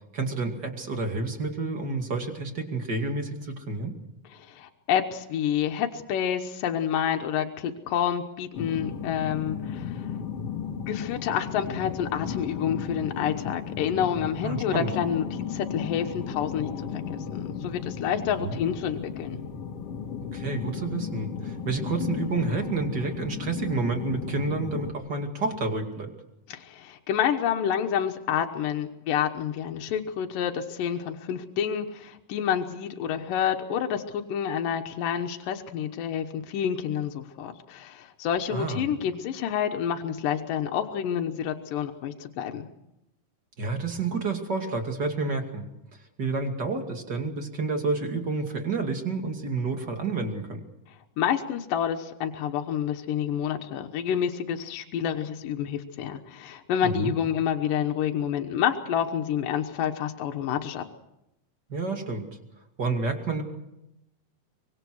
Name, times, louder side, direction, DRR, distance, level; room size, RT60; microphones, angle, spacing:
voice 1, 0.1-4.0 14.4-14.9 18.4-18.6 20.3-26.1 38.5-38.8 43.6-45.7 46.2-50.6 56.8-57.1 61.7-62.3 62.8-63.4, right 3 dB, 35° right, 4 dB, 2.7 m, -29 dB
voice 2, 4.3-10.1 10.9-19.4 26.5-42.7 51.2-60.8, left 9 dB, 80° left, 4 dB, 2.8 m, -28 dB
sound 1, 8.6-24.9, left 7 dB, 50° left, 2.6 m, -35 dB
24.5 x 22.5 x 6.4 m, 0.89 s
omnidirectional pair, 3.9 m